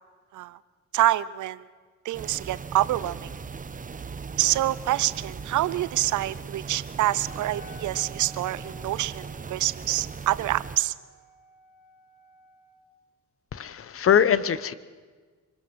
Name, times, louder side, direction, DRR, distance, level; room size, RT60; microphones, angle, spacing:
voice 1, 0.9-1.6 2.0-3.3 4.4-10.9, right 15 dB, 80° right, 17 dB, 0.7 m, -26 dB
sound 1, 2.1-10.8, right 5 dB, 25° right, 1.0 m, -38 dB
Wind instrument woodwind instrument, 7.1-12.9, right 1 dB, 65° left, 3.7 m, -51 dB
voice 2, 13.5-14.7, left 8 dB, 45° left, 16 dB, 1.0 m, -22 dB
25.5 x 21.0 x 6.2 m, 1.5 s
cardioid pair, 90°, 30 cm